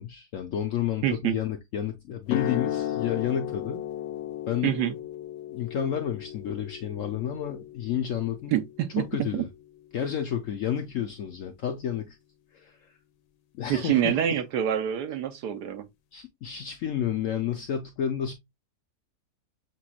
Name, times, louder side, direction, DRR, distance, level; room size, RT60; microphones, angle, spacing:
voice 1, 0.0-3.8 4.5-4.8 5.5-8.6 9.0-9.5 9.9-12.2 12.5-12.9 13.5-14.4 16.1-18.3, left 9 dB, 70° left, 0.8 m, -31 dB
voice 2, 1.0-1.4 4.6-4.9 8.5-9.4 13.7-15.9, right 10 dB, 70° right, 1.2 m, -26 dB
sound 1, 2.2-10.3, left 11 dB, 85° left, 1.3 m, -36 dB
6.7 x 3.0 x 2.2 m
omnidirectional pair, 1.9 m